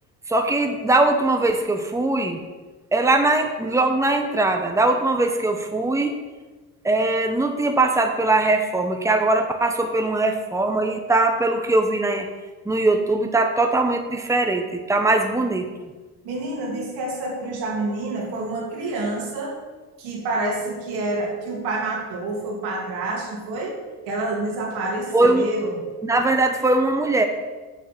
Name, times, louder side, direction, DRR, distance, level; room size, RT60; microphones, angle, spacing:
voice 1, 0.3-2.4 2.9-6.2 6.8-12.3 12.6-15.7 25.1-25.5 26.0-27.3, right 2 dB, 10° right, 5 dB, 1.0 m, -21 dB
voice 2, 16.2-19.6 20.0-23.8 24.1-25.8, right 2 dB, 80° right, -2 dB, 2.8 m, -28 dB
7.1 x 6.3 x 6.2 m, 1.3 s
supercardioid pair, 70°, 38 cm